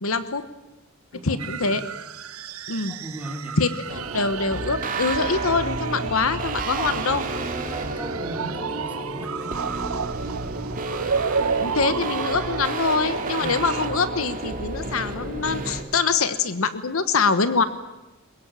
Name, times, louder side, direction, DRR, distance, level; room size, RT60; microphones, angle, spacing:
voice 1, 0.0-0.5 1.2-1.8 2.7-2.9 3.6-7.2 11.6-17.6, left 4 dB, 70° left, 12 dB, 1.2 m, -24 dB
voice 2, 1.1-1.8 2.8-3.6 6.7-7.1 7.5-9.6 13.3-13.6, right 1 dB, 5° right, 2 dB, 3.5 m, -37 dB
sound 1, 1.4-13.9, right 6 dB, 85° right, 0.9 m, -32 dB
sound 2, 3.9-15.8, right 3 dB, 40° right, 2.4 m, -31 dB
22.5 x 22.0 x 8.9 m, 1.0 s
head